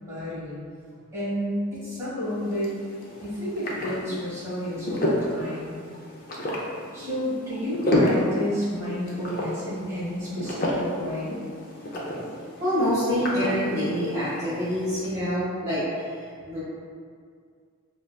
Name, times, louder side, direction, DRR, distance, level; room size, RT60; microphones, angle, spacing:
voice 1, 0.1-0.6 1.1-2.7 3.2-5.8 6.9-11.4, equal, 15° right, -12 dB, 1.1 m, -31 dB
sound 1, 2.2-15.1, left 1 dB, 40° left, 0.4 m, -31 dB
voice 2, 12.6-16.6, equal, 30° right, -14 dB, 0.8 m, -26 dB
3.8 x 2.2 x 2.2 m, 2.2 s
head